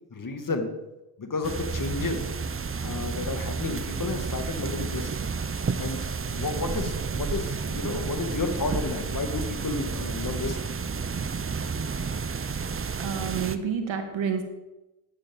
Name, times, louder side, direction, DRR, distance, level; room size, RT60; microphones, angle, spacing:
voice 1, 0.1-0.7 1.2-2.3 2.8-5.1 5.8-10.6, left 3 dB, 40° left, 6 dB, 2.2 m, -31 dB
sound 1, 1.4-13.6, right 5 dB, 25° right, 0.9 m, -31 dB
voice 2, 13.0-14.4, right 7 dB, 70° right, 6 dB, 2.2 m, -29 dB
9.9 x 8.8 x 7.2 m, 1.0 s
supercardioid pair, 60°, 48 cm